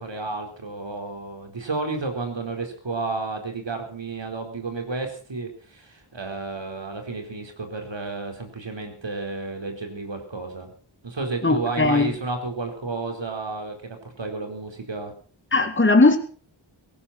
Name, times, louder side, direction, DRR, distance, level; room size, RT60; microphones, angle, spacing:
voice 1, 0.0-10.7 11.0-15.1, right 3 dB, 65° right, 4.3 m, -32 dB
voice 2, 11.4-12.1 15.5-16.2, left 3 dB, 25° left, 2.1 m, -18 dB
18.0 x 15.5 x 4.3 m
wide cardioid pair, 60°, 48 cm